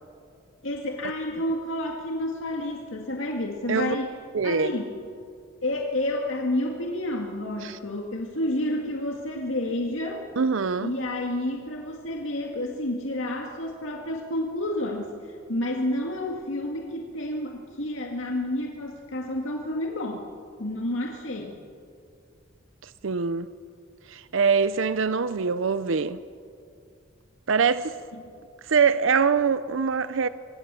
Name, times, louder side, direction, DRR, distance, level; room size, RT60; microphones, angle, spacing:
voice 1, 0.6-4.1 4.4-4.9 5.6-10.2 10.8-20.3 20.6-21.6 28.2-28.4, left 1 dB, 75° left, 2.1 m, -30 dB
voice 2, 4.3-4.7 7.6-7.8 10.4-10.9 22.8-23.5 24.1-26.2 27.5-28.0 28.6-30.3, right 5 dB, 75° right, 0.6 m, -23 dB
25.5 x 25.0 x 6.9 m
head